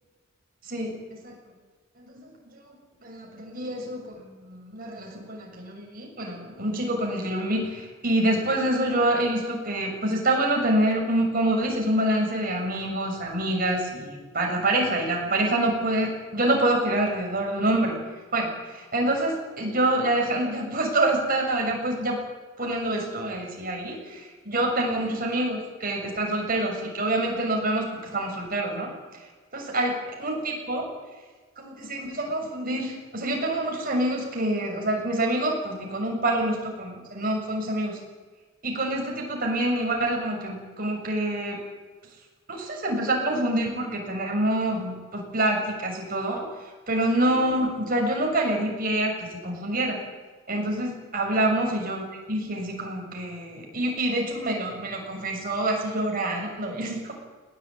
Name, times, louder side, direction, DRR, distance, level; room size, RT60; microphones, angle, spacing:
voice 1, 0.6-1.3 2.0-2.6 3.0-18.0 18.3-22.2 22.6-28.9 29.5-30.9 31.6-38.0 38.6-41.6 42.5-46.5 46.9-50.0 50.5-57.1, right 1 dB, 40° right, 0 dB, 6.6 m, -26 dB
20.5 x 19.5 x 9.0 m, 1.4 s
head